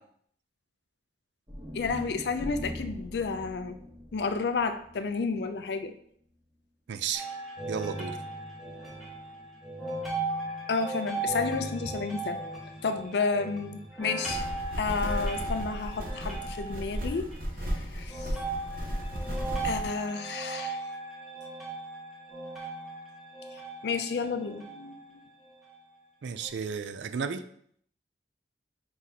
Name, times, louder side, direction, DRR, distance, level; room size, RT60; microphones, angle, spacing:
sound 1, 1.5-5.7, equal, 25° right, 1.3 m, -42 dB
voice 1, 1.7-3.8 4.1-5.9 10.7-12.4 12.8-14.5 14.8-17.3 17.9-18.3 19.6-20.8 23.8-24.9, left 4 dB, 65° left, 10 dB, 0.4 m, -31 dB
voice 2, 6.9-7.3 7.7-8.2 26.2-27.4, right 6 dB, 80° right, 11 dB, 0.4 m, -33 dB
sound 2, 7.1-17.4 18.1-25.0 25.6-25.7 26.4-26.5, right 2 dB, ahead, 1.0 m, -37 dB
sound 3, 14.2-19.8, equal, 50° right, 0.9 m, -34 dB
4.7 x 4.0 x 2.8 m, 0.64 s
head